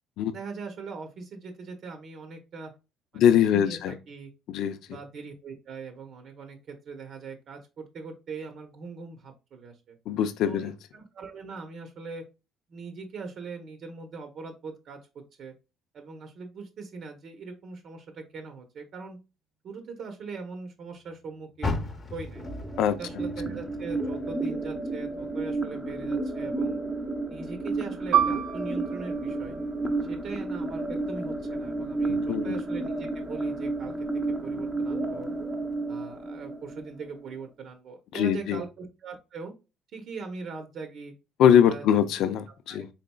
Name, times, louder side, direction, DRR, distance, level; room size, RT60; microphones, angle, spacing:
voice 1, 0.3-2.7 3.1-4.3 4.9-10.0 10.5-12.2 12.7-15.0 15.4-15.5 15.9-19.2 19.6-22.5 23.0-26.8 27.3-29.6 30.0-34.1 34.4-35.3 35.9-39.5 39.9-41.1 41.5-41.8 42.7-42.8, right 4 dB, 45° right, 0.8 m, -41 dB
voice 2, 3.2-3.9 4.5-4.8 10.1-10.7 22.8-23.0 32.1-32.6 38.1-38.6 41.4-42.9, left 9 dB, 65° left, 0.5 m, -22 dB
Car, 21.6-24.9 25.3-26.6 27.1-27.2 27.8-27.9, left 3 dB, 30° left, 0.9 m, -36 dB
sound 1, 22.4-37.3, right 2 dB, 5° right, 0.7 m, -32 dB
Piano, 28.1-33.2 33.5-33.7 34.4-34.8, right 10 dB, 80° right, 0.6 m, -31 dB
4.2 x 3.8 x 2.2 m
cardioid pair, 155°, 0 cm